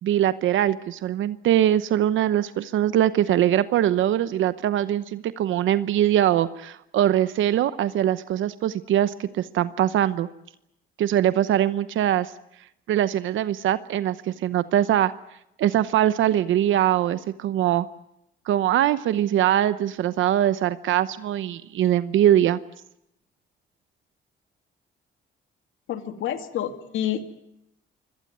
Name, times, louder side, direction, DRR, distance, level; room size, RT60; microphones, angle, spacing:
voice 1, 0.0-10.3 11.0-12.3 12.9-15.1 15.6-17.9 18.5-22.6, right 11 dB, 75° right, 14 dB, 0.9 m, -22 dB
voice 2, 25.9-27.3, left 10 dB, 80° left, 8 dB, 2.5 m, -28 dB
24.5 x 18.0 x 9.4 m, 0.80 s
cardioid pair, 90°, 20 cm